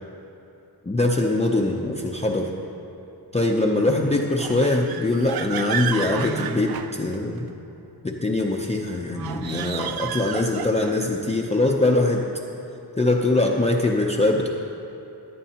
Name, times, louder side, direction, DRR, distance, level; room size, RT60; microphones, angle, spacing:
voice 1, 0.9-2.5 3.3-7.5 8.0-12.2 13.0-14.5, left 2 dB, 15° left, -1 dB, 0.5 m, -22 dB
sound 1, 4.4-7.5 9.1-11.1, right 8 dB, 60° right, 0.5 m, -31 dB
14.5 x 11.0 x 2.9 m, 2.8 s
wide cardioid pair, 130°, 41 cm